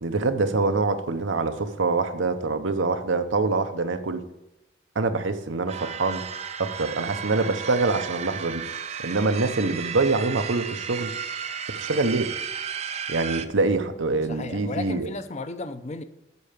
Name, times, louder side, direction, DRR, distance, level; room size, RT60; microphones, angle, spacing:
voice 1, 0.0-4.2 5.0-6.2 6.6-8.7 9.0-11.1 11.9-12.3 13.1-15.1, right 3 dB, 90° right, 8 dB, 0.8 m, -25 dB
sound 1, 5.7-13.5, right 7 dB, 35° right, 0.5 m, -34 dB
voice 2, 14.3-16.0, left 3 dB, 35° left, 11 dB, 0.6 m, -34 dB
8.3 x 5.7 x 6.7 m, 0.93 s
head